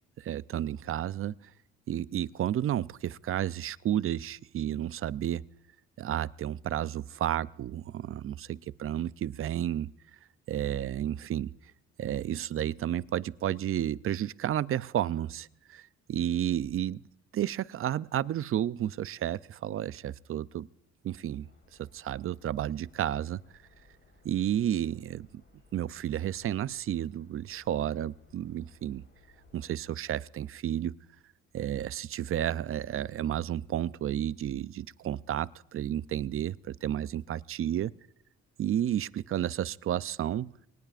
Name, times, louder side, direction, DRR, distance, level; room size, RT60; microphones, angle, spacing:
voice 1, 0.2-1.3 1.9-5.5 6.0-9.9 10.5-11.5 12.0-17.0 17.3-20.7 21.0-21.5 21.8-23.4 24.2-25.3 25.7-29.0 29.5-31.0 31.5-37.9 38.6-40.6, right 11 dB, 45° right, 0.5 m, -32 dB
sound 1, 21.4-29.7, left 3 dB, 40° left, 4.2 m, -62 dB
23.5 x 19.0 x 2.5 m
cardioid pair, 90°, 30 cm